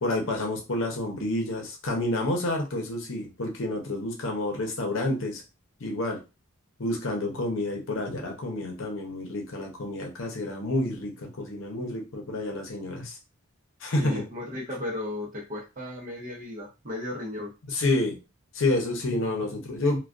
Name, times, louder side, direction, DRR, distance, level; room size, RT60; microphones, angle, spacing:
voice 1, 0.0-5.4 5.8-6.2 6.8-13.2 13.8-14.2 17.7-18.2 18.5-20.0, left 2 dB, 65° left, 1 dB, 0.7 m, -29 dB
voice 2, 14.0-17.5, left 1 dB, 40° right, -1 dB, 0.7 m, -35 dB
2.3 x 2.2 x 2.4 m, 0.28 s
head